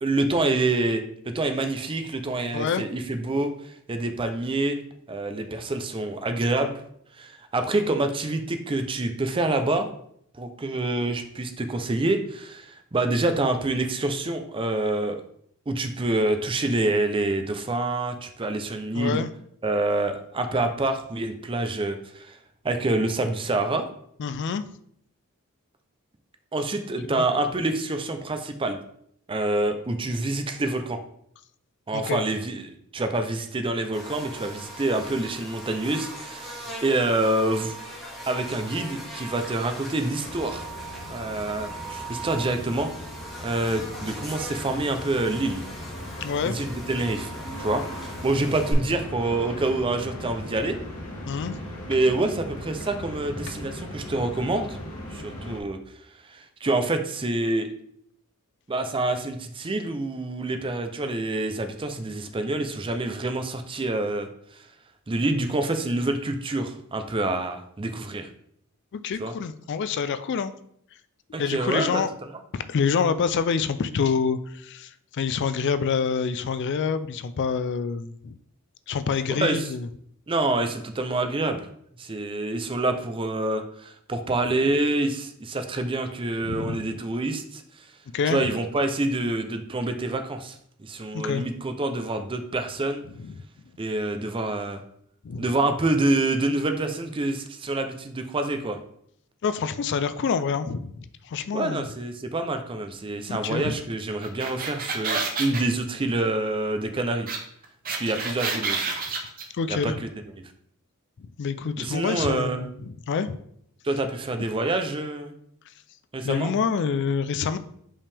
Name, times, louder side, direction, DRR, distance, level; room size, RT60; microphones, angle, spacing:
voice 1, 0.0-4.8 5.1-6.7 7.2-9.9 10.4-15.2 15.7-19.2 19.6-22.4 22.6-23.9 26.5-28.8 29.3-31.0 31.9-37.7 38.3-40.7 41.1-42.9 43.4-45.6 46.4-47.3 47.6-50.8 51.9-54.8 55.1-55.8 56.3-57.7 58.7-64.3 65.1-68.3 69.2-69.3 71.3-72.0 79.3-79.7 80.3-81.7 82.0-87.6 88.2-93.0 93.8-94.8 95.4-98.8 101.5-107.3 107.9-108.9 109.7-110.1 111.8-112.7 113.8-115.3 116.1-116.5, right 2 dB, 25° right, 7 dB, 0.5 m, -27 dB
voice 2, 18.9-19.3 24.2-24.6 27.1-27.2 31.9-32.2 46.2-46.6 51.3-51.5 68.9-70.5 71.4-72.1 72.5-78.4 78.9-79.9 86.4-86.9 88.1-88.5 91.1-91.4 93.2-93.3 95.2-95.4 99.4-101.8 103.3-103.8 109.5-110.0 111.2-113.4 114.4-114.5 116.2-117.6, left 6 dB, 55° left, 12 dB, 0.3 m, -27 dB
Buzz, 33.9-48.7, right 1 dB, ahead, 1.8 m, -40 dB
sound 1, 40.2-55.6, left 1 dB, 70° left, 1.5 m, -38 dB
sound 2, 104.2-105.6 107.3-107.4 107.6-109.4, right 4 dB, 40° right, 0.9 m, -28 dB
5.5 x 5.1 x 3.4 m, 0.69 s
head